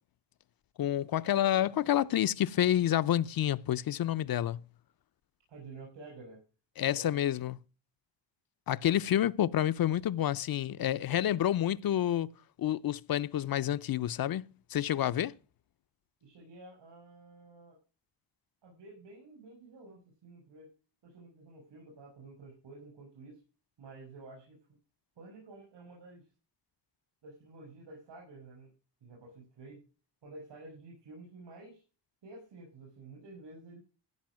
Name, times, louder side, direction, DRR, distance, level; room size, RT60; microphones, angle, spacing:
voice 1, 0.8-4.6 6.8-7.6 8.7-12.3 12.6-15.3, left 11 dB, 55° left, 0.6 m, -29 dB
voice 2, 5.5-6.4 6.8-7.2 16.2-17.8 18.6-20.7 21.0-23.4 23.8-24.6 25.2-26.3 27.2-28.7 29.0-29.8 30.2-31.8 32.2-33.8, right 3 dB, 75° right, 6.4 m, -51 dB
15.0 x 5.5 x 6.2 m
cardioid pair, 105°, 43 cm